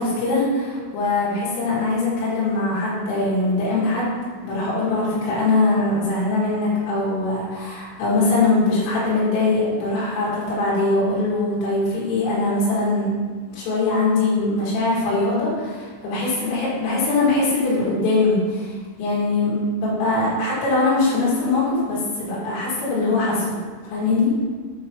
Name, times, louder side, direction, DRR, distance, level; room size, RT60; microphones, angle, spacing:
voice 1, 0.0-4.1 4.4-13.1 13.5-18.7 19.0-23.5 23.8-24.3, left 2 dB, 85° left, -8 dB, 4.4 m, -22 dB
8.4 x 3.1 x 4.8 m, 1.5 s
omnidirectional pair, 5.8 m